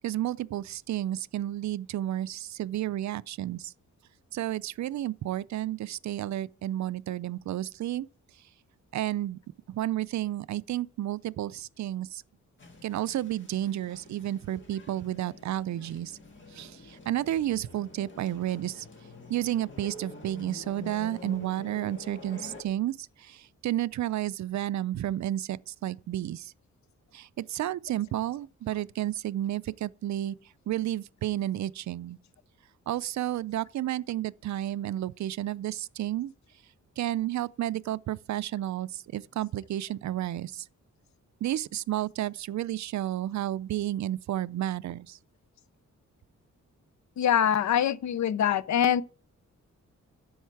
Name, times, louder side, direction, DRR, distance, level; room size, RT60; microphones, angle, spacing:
voice 1, 0.0-3.7 4.3-8.1 8.9-9.4 9.7-12.2 12.8-16.2 16.5-18.9 19.3-26.5 27.1-30.4 30.7-32.2 32.9-36.3 37.0-40.7 41.4-45.2, right 13 dB, 65° right, 0.4 m, -31 dB
sound 1, 12.6-22.6, left 2 dB, 40° left, 1.6 m, -47 dB
voice 2, 47.2-49.0, left 9 dB, 65° left, 0.5 m, -24 dB
10.0 x 7.1 x 4.7 m
wide cardioid pair, 140°, 30 cm